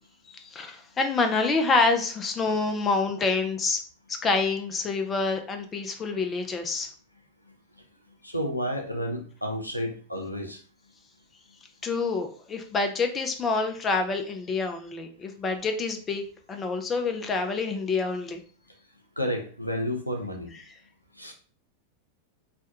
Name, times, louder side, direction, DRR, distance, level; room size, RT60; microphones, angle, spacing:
voice 1, 0.3-3.8 4.2-6.9 11.8-16.2 16.5-18.4, left 3 dB, 20° left, 5 dB, 0.4 m, -27 dB
voice 2, 8.2-10.6 19.2-20.5 21.2-21.3, equal, 90° left, 3 dB, 0.5 m, -31 dB
3.2 x 2.2 x 2.8 m, 0.41 s
figure-of-eight pair, 90°, 0 cm